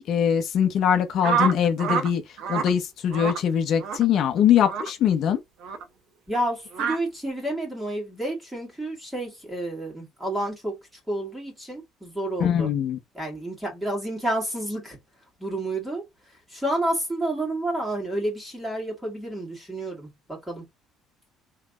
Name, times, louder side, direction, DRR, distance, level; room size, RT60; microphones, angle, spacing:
voice 1, 0.0-2.2 2.5-5.4 12.4-13.0, left 9 dB, 45° left, 0.8 m, -22 dB
sound 1, 1.2-2.1 2.4-2.7 3.1-3.4 3.8-4.0 4.6-4.9 5.6-5.8 6.7-7.0, right 6 dB, 55° right, 0.9 m, -26 dB
voice 2, 6.3-10.8 11.1-12.7 13.1-15.0 15.4-16.0 16.5-20.6, right 1 dB, 5° right, 2.2 m, -30 dB
5.7 x 3.1 x 2.4 m
cardioid pair, 175°, 0 cm